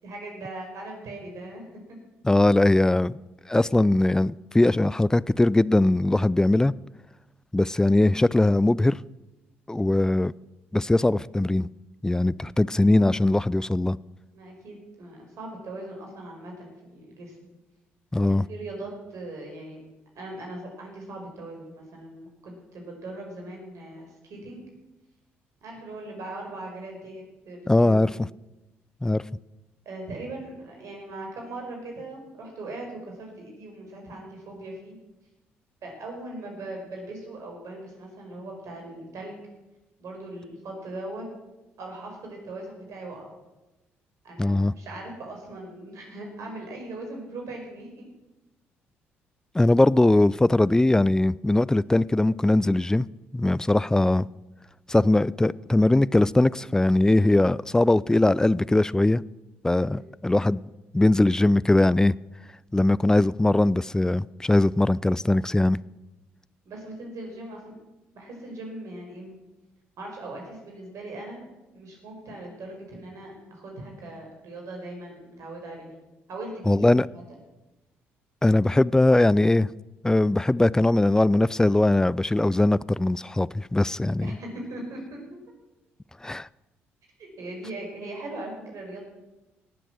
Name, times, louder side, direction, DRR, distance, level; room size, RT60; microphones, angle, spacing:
voice 1, 0.0-2.0 14.3-17.4 18.5-19.8 20.2-24.6 25.6-28.1 29.9-35.0 35.8-39.4 40.0-41.3 41.8-43.3 44.2-48.1 59.9-60.1 66.7-67.7 68.1-69.3 70.0-71.4 71.7-75.9 76.3-76.9 77.1-77.4 84.2-85.2 87.2-89.1, right 2 dB, 60° right, 5.1 m, -39 dB
voice 2, 2.2-3.2 3.5-6.7 7.5-9.0 9.7-10.3 10.7-11.7 12.0-14.0 18.1-18.5 27.7-28.1 29.0-29.2 44.4-44.7 49.5-53.1 53.3-54.3 54.9-59.2 59.6-60.6 60.9-62.1 62.7-65.8 76.7-77.1 78.4-79.7 80.0-84.4 86.2-86.5, left 2 dB, 10° left, 0.4 m, -20 dB
18.5 x 7.7 x 6.4 m
hypercardioid pair, 50°, 6 cm